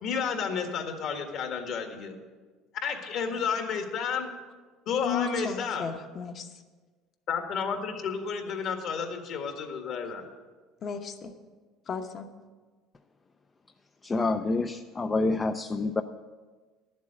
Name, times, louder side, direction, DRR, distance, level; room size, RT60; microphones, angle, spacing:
voice 1, 0.0-2.1 2.8-4.3 4.8-5.9 7.3-10.2, left 6 dB, 55° left, 4 dB, 1.7 m, -31 dB
voice 2, 5.0-6.5 10.8-11.3 11.9-12.3, left 6 dB, 35° left, 7 dB, 0.9 m, -33 dB
voice 3, 14.0-16.0, left 3 dB, 20° left, 8 dB, 0.4 m, -27 dB
11.0 x 7.4 x 7.6 m, 1.4 s
cardioid pair, 140°, 0 cm